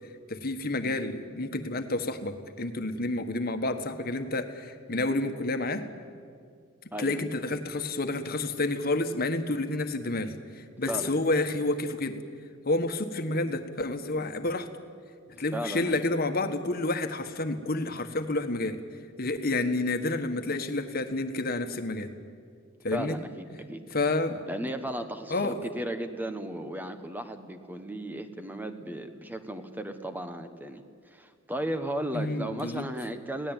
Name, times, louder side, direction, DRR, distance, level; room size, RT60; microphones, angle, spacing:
voice 1, 0.3-5.9 7.0-12.2 12.6-14.7 15.4-18.8 19.2-22.1 22.8-23.2 23.9-24.4 25.3-25.6 32.1-32.8, left 2 dB, 45° left, 7 dB, 1.6 m, -29 dB
voice 2, 6.9-7.2 10.9-11.1 15.5-16.0 22.9-23.8 24.5-33.5, right 1 dB, 10° right, 8 dB, 1.3 m, -35 dB
27.0 x 18.0 x 9.1 m, 2.2 s
head